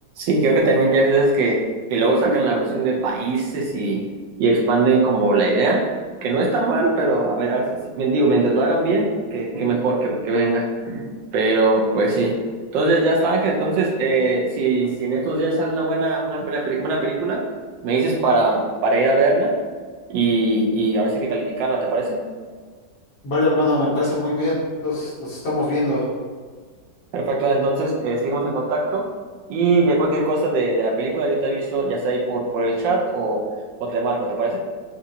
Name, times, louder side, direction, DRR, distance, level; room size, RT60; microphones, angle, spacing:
voice 1, 0.2-1.6 1.9-4.0 4.4-5.8 6.2-12.4 12.7-17.4 17.8-19.5 20.1-22.2 27.1-29.1 29.5-33.4 33.8-34.6, right 2 dB, 90° right, -2 dB, 1.4 m, -20 dB
voice 2, 23.2-26.0, left 2 dB, 65° left, -7 dB, 1.8 m, -22 dB
6.9 x 2.5 x 2.7 m, 1.5 s
omnidirectional pair, 1.9 m